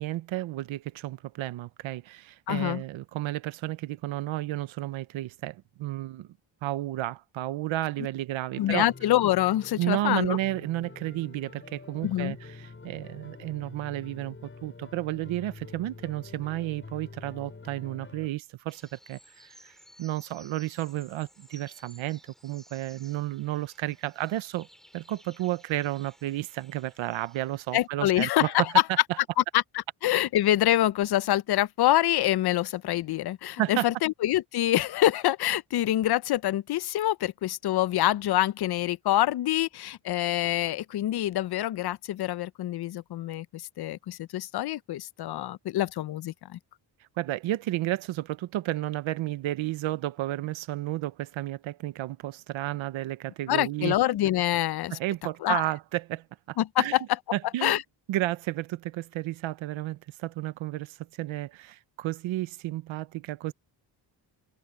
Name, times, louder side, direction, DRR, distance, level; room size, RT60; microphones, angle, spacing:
voice 1, 0.0-6.3 6.6-8.9 9.8-14.4 14.6-19.7 20.0-24.7 24.9-28.5 33.6-33.9 47.2-54.0 54.9-57.0 57.3-57.8 58.1-63.5, right 15 dB, 85° right, 0.9 m, -32 dB
voice 2, 2.5-2.8 8.6-10.4 12.0-12.3 27.7-28.7 29.5-29.6 30.0-46.6 53.5-54.9 55.4-55.6 56.6-57.0 57.6-57.8, left 14 dB, 55° left, 0.6 m, -26 dB
sound 1, 8.5-18.3, left 4 dB, 25° left, 6.2 m, -46 dB
sound 2, 18.7-27.9, equal, ahead, 2.9 m, -57 dB
cardioid pair, 100°, 46 cm